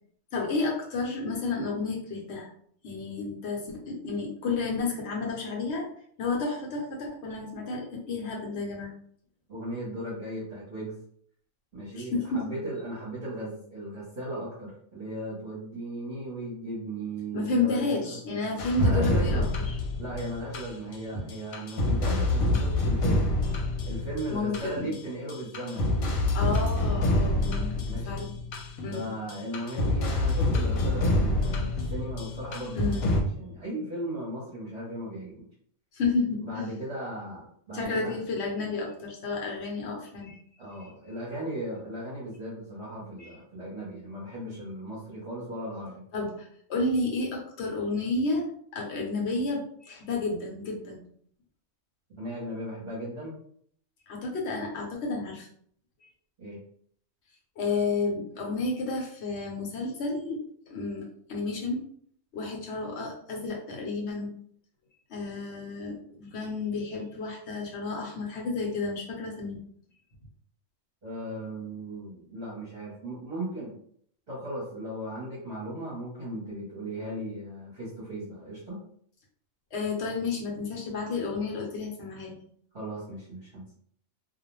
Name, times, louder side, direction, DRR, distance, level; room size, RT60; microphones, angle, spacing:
voice 1, 0.3-2.5 2.8-5.8 6.2-8.9 11.9-12.4 17.3-19.8 21.1-21.3 24.3-24.9 26.3-28.3 28.8-29.1 32.8-33.1 35.9-36.8 37.7-40.4 43.2-43.3 46.1-48.5 48.7-51.0 54.1-55.5 57.6-60.4 60.7-61.8 62.3-64.3 65.1-69.6 79.7-82.3, left 3 dB, 60° left, -1 dB, 0.9 m, -31 dB
voice 2, 9.5-11.0 11.7-18.4 18.8-19.5 20.0-23.3 23.8-25.9 27.8-28.2 28.9-35.5 36.4-38.2 40.6-46.0 52.2-53.4 56.4-56.6 71.0-73.8 74.3-78.8 82.7-83.6, right 1 dB, 50° right, -7 dB, 0.9 m, -37 dB
sound 1, 18.6-21.0 21.3-25.0 25.3-33.2, left 1 dB, 85° left, 1.0 m, -27 dB
2.4 x 2.0 x 3.0 m, 0.63 s
omnidirectional pair, 1.5 m